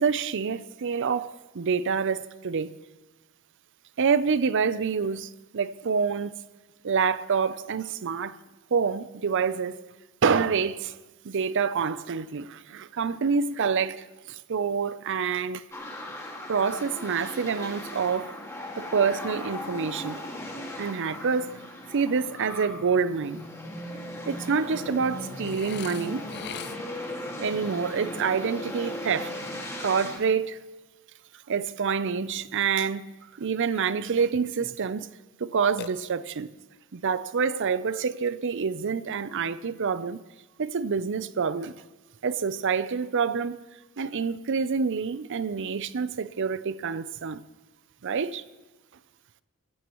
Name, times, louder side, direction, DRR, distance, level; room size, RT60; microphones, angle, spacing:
voice 1, 0.0-2.7 4.0-6.4 6.8-8.4 8.7-9.9 10.2-11.0 11.2-15.7 16.5-18.3 18.8-20.2 20.8-21.6 21.9-23.5 24.3-26.3 27.4-29.3 29.8-30.6 31.5-35.1 35.4-36.5 36.9-40.2 40.6-41.8 42.2-43.6 44.0-47.4 48.0-48.4, right 5 dB, 55° right, 0.5 m, -27 dB
sound 1, 15.7-30.2, left 1 dB, 15° left, 2.0 m, -38 dB
Burping eructation, 25.4-27.1 35.8-36.6, left 9 dB, 50° left, 0.5 m, -41 dB
25.0 x 15.0 x 3.0 m
head